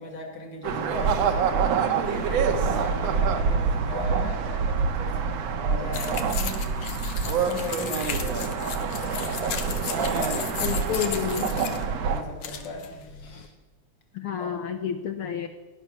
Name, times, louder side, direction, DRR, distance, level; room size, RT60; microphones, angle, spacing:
voice 1, 0.0-13.5 14.4-14.5, left 2 dB, 40° left, 2 dB, 3.2 m, -39 dB
sound 1, 0.6-12.2, right 5 dB, 65° right, 2.2 m, -26 dB
sound 2, 5.9-13.5, left 7 dB, 60° left, 2.0 m, -36 dB
voice 2, 10.6-11.5 14.1-15.5, left 8 dB, 75° left, 8 dB, 1.2 m, -29 dB
17.0 x 11.0 x 7.0 m, 1.2 s
omnidirectional pair, 3.4 m